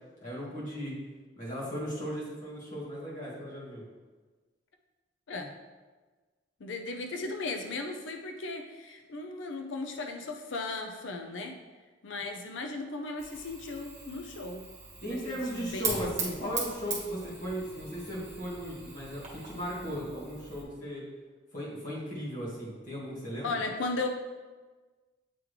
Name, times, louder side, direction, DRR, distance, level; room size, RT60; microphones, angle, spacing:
voice 1, 0.2-0.9 1.4-3.8 15.0-21.0 21.5-23.5, equal, 40° left, -7 dB, 1.9 m, -36 dB
voice 2, 6.6-11.6 12.0-14.6 15.1-16.2 23.4-24.1, left 3 dB, 75° left, 4 dB, 0.5 m, -36 dB
Fire, 13.2-20.6, right 4 dB, 40° right, 1.3 m, -40 dB
8.5 x 3.6 x 3.2 m, 1.3 s
head